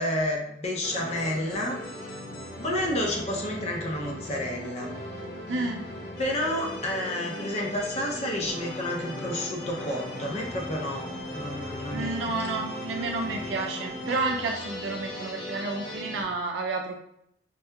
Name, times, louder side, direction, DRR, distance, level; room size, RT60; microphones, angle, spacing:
voice 1, 0.0-1.8 2.6-4.9 5.5-5.7 6.2-12.3, left 1 dB, 35° left, 0 dB, 0.5 m, -30 dB
sound 1, 0.8-16.2, left 1 dB, 60° left, 1.2 m, -38 dB
voice 2, 5.5-5.8 11.9-17.0, right 3 dB, 70° right, 2 dB, 0.3 m, -30 dB
sound 2, 8.5-14.3, equal, 75° left, 0.7 m, -40 dB
4.5 x 2.7 x 2.2 m, 0.76 s
head